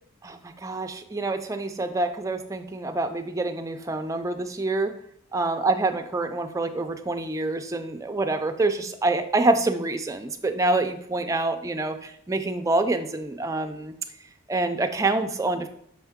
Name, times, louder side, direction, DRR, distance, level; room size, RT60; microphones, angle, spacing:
voice 1, 0.2-4.9 5.3-13.9 14.5-15.7, right 2 dB, 15° right, 6 dB, 0.3 m, -26 dB
6.1 x 4.4 x 3.6 m, 0.69 s
head